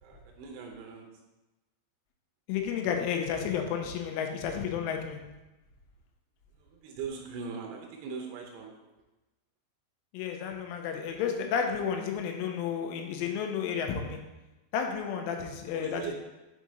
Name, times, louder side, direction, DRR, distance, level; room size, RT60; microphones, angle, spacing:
voice 1, 0.0-1.0 6.7-8.7 15.7-16.1, right 5 dB, 80° right, 1 dB, 2.6 m, -40 dB
voice 2, 2.5-5.2 10.1-14.2 14.7-16.1, left 7 dB, 90° left, 4 dB, 3.2 m, -32 dB
7.5 x 3.7 x 4.0 m, 1.1 s
omnidirectional pair, 5.5 m